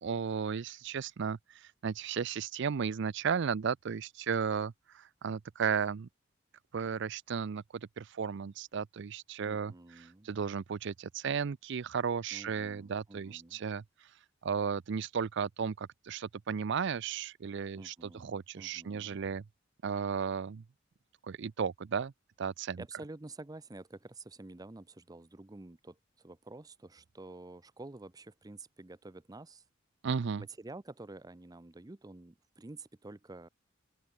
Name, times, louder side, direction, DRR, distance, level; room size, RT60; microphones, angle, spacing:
voice 1, 0.0-6.1 6.7-13.8 14.4-19.4 19.8-20.6 21.2-22.1 22.4-22.8 30.0-30.4, right 6 dB, 60° right, 0.5 m, -34 dB
voice 2, 9.5-10.3 12.3-13.6 17.7-19.2 22.8-29.6 30.4-33.5, right 2 dB, 20° right, 0.6 m, -49 dB
open air
head